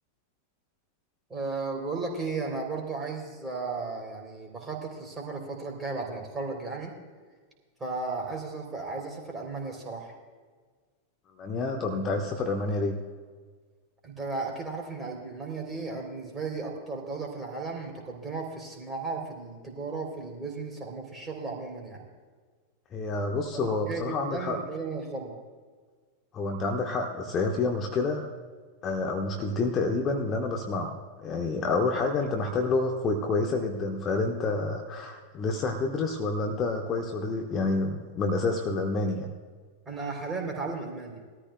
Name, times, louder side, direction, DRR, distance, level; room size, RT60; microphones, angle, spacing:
voice 1, 1.3-6.9 7.8-10.2 14.0-22.1 23.5-25.4 39.8-41.2, right 3 dB, 15° right, 0 dB, 3.3 m, -35 dB
voice 2, 11.4-13.0 22.9-24.6 26.3-28.3 28.8-39.3, left 3 dB, 30° left, 2 dB, 1.2 m, -28 dB
20.5 x 13.5 x 2.2 m, 1.5 s
figure-of-eight pair, 90°, 0 cm